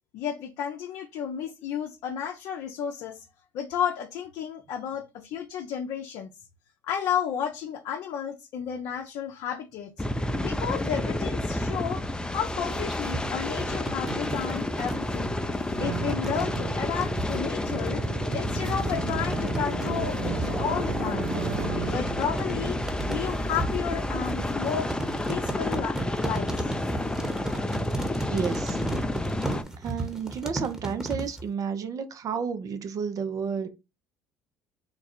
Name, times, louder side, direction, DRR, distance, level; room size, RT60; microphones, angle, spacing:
voice 1, 0.1-3.3 3.5-6.3 6.8-10.0 10.4-12.0 12.3-15.3 15.8-18.0 18.3-21.3 21.7-22.8 23.1-24.9 25.3-26.0 26.2-26.7, left 8 dB, 65° left, 0.6 m, -32 dB
sound 1, 10.0-29.6, left 1 dB, 10° left, 0.6 m, -30 dB
sound 2, 12.3-31.4, right 2 dB, 10° right, 1.1 m, -36 dB
Drum, 15.8-24.1, right 7 dB, 80° right, 0.7 m, -37 dB
voice 2, 28.3-28.8 29.8-33.7, right 6 dB, 50° right, 0.7 m, -31 dB
3.9 x 2.3 x 4.3 m
hypercardioid pair, 65°, 8 cm